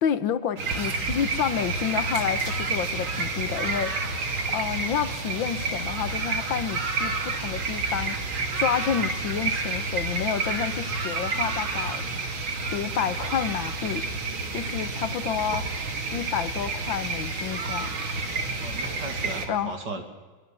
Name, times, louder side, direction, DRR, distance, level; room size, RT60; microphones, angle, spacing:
voice 1, 0.0-8.2 8.5-12.3 12.7-14.1 14.5-15.7 16.1-18.0 19.5-20.0, left 8 dB, 75° left, 1.7 m, -30 dB
sound 1, 0.6-19.5, right 3 dB, 75° right, 3.2 m, -29 dB
voice 2, 18.6-20.0, right 3 dB, 55° right, 3.1 m, -36 dB
24.5 x 22.5 x 7.6 m
omnidirectional pair, 2.2 m